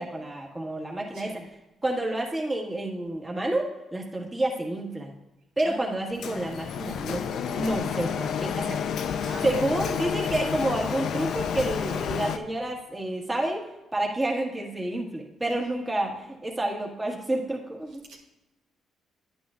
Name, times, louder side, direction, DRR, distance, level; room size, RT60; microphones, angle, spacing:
voice 1, 0.0-1.4 1.8-5.1 5.6-7.2 7.5-8.8 9.4-13.6 13.9-18.0, right 1 dB, 15° right, 0 dB, 1.6 m, -29 dB
Printer, 6.2-12.4, left 7 dB, 70° left, 0.5 m, -30 dB
voice 2, 9.2-9.6 18.1-18.2, right 3 dB, 85° right, -3 dB, 2.0 m, -42 dB
10.5 x 8.9 x 2.5 m, 0.98 s
cardioid pair, 90°, 0 cm